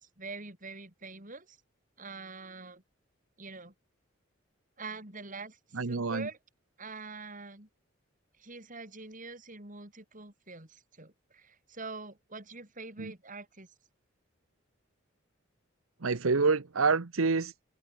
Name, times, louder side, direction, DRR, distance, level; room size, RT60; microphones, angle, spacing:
voice 1, 0.0-1.6 2.0-2.8 3.4-3.7 4.8-5.6 5.8-6.4 6.8-7.7 8.4-13.7, right 3 dB, 40° right, 6.8 m, -44 dB
voice 2, 5.7-6.3 13.0-13.1 16.0-17.5, right 4 dB, 90° right, 0.9 m, -27 dB
head